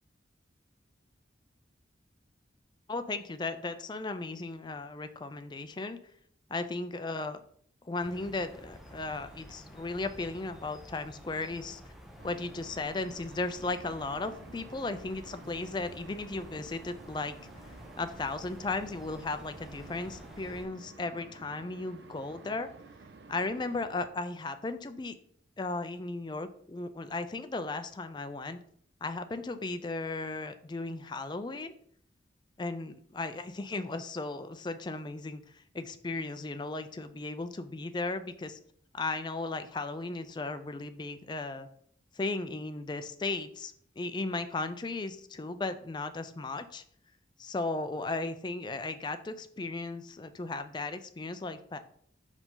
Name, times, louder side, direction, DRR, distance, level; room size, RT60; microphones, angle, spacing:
voice 1, 2.9-6.0 6.5-7.4 7.8-11.8 12.2-17.3 18.0-22.7 23.3-25.2 25.6-28.6 29.0-31.7 32.6-38.6 38.9-41.7 42.1-46.8 47.4-51.8, left 3 dB, 25° left, 10 dB, 0.4 m, -36 dB
sound 1, 8.0-20.7, equal, ahead, 0.7 m, -50 dB
sound 2, 12.2-24.1, right 3 dB, 65° right, 0.5 m, -52 dB
5.3 x 4.9 x 3.8 m, 0.63 s
head